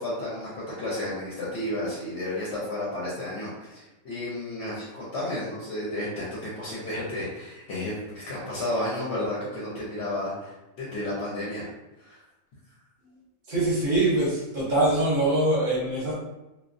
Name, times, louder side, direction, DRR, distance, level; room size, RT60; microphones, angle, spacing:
voice 1, 0.0-11.7 12.0-12.2, left 1 dB, 60° left, -7 dB, 0.8 m, -32 dB
voice 2, 13.5-16.1, right 2 dB, 45° right, -7 dB, 0.6 m, -23 dB
2.3 x 2.1 x 2.5 m, 1.0 s
omnidirectional pair, 1.5 m